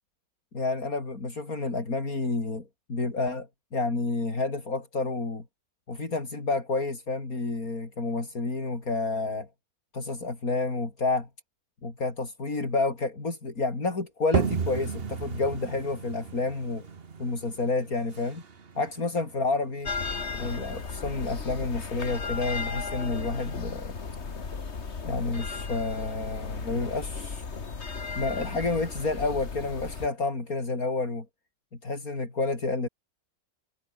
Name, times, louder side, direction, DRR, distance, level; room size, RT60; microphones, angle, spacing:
voice 1, 0.5-5.4 5.9-9.5 9.9-11.3 11.8-16.9 17.2-18.4 18.8-19.9 20.3-23.9 25.0-27.4 28.2-31.3 31.8-32.9, left 3 dB, 70° left, 4.7 m, -30 dB
sound 1, 14.3-19.8, right 5 dB, 40° right, 1.5 m, -33 dB
sound 2, 19.8-30.1, left 5 dB, 50° left, 2.1 m, -35 dB
omnidirectional pair, 1.5 m